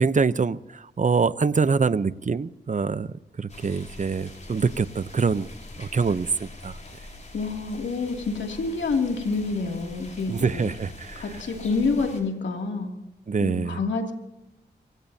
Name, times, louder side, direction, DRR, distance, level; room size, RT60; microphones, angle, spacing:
voice 1, 0.0-5.5 5.8-6.8 10.3-11.4 13.3-13.8, right 5 dB, 45° right, 15 dB, 0.7 m, -25 dB
sound 1, 3.5-12.2, left 2 dB, 40° left, 4.8 m, -43 dB
voice 2, 7.3-10.7 11.2-12.9 13.4-14.1, left 4 dB, 80° left, 2 dB, 2.7 m, -27 dB
28.0 x 16.0 x 2.8 m, 0.98 s
cardioid pair, 55°, 18 cm